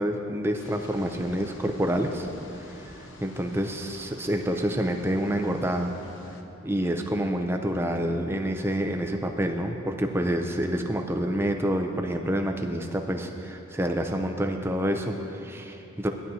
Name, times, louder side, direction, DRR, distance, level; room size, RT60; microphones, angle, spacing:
voice 1, 0.0-2.3 2.5-5.9 6.6-16.1, equal, 10° right, 4 dB, 0.4 m, -28 dB
sound 1, 0.6-6.4, left 2 dB, 65° left, 0.8 m, -48 dB
17.5 x 10.5 x 2.8 m, 2.9 s
head